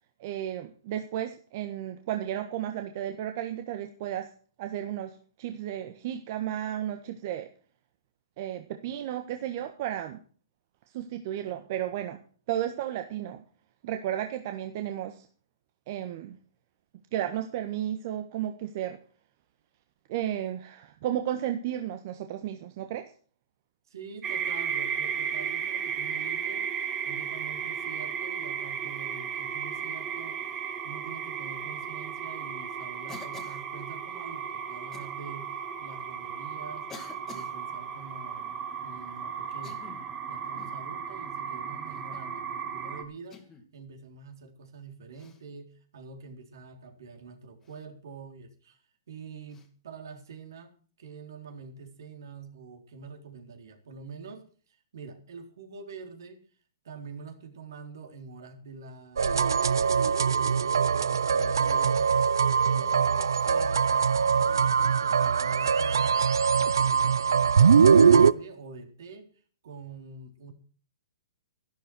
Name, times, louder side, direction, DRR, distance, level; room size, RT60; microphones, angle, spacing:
voice 1, 0.2-4.3 4.6-7.5 8.4-10.2 10.9-12.2 12.5-13.4 13.8-15.3 15.9-16.4 17.1-19.0 20.1-23.1, right 11 dB, 45° right, 7 dB, 1.4 m, -33 dB
voice 2, 23.9-30.5 30.8-36.9 37.3-38.6 38.8-39.8 40.3-43.4 43.7-48.8 49.1-50.7 51.0-56.4 56.8-59.8 60.0-62.1 62.5-66.2 66.5-69.3 69.6-70.5, right 5 dB, 70° right, 5 dB, 4.0 m, -46 dB
sound 1, 24.2-43.0, right 8 dB, 20° right, 2.3 m, -35 dB
Cough, 33.1-33.7 34.9-35.1 36.0-36.1 36.9-37.5 39.5-40.1 40.5-40.8 41.9-42.3 43.3-43.7 45.1-45.4 47.6-47.8 49.5-49.7, left 5 dB, 15° left, 2.2 m, -48 dB
sound 2, 59.2-68.3, right 6 dB, 85° right, 0.6 m, -22 dB
12.0 x 12.0 x 6.3 m, 0.42 s
hypercardioid pair, 145°, 2 cm